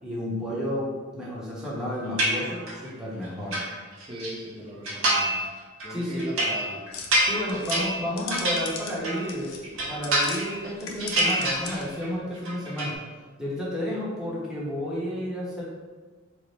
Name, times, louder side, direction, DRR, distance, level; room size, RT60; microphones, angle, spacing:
voice 1, 0.0-3.6 5.9-6.2 7.2-9.6 9.9-13.0 13.4-15.7, left 1 dB, 5° right, -7 dB, 0.8 m, -31 dB
sound 1, 2.2-2.9 3.2-4.3 4.8-5.5 5.8-9.3 9.6-10.7 11.0-12.1 12.3-13.0, right 1 dB, 65° right, 0.7 m, -27 dB
voice 2, 4.1-5.4 5.8-6.8, equal, 25° right, -5 dB, 0.5 m, -38 dB
sound 2, 6.9-10.4 10.7-12.0, left 5 dB, 80° left, 0.5 m, -39 dB
3.2 x 2.0 x 4.0 m, 1.4 s
head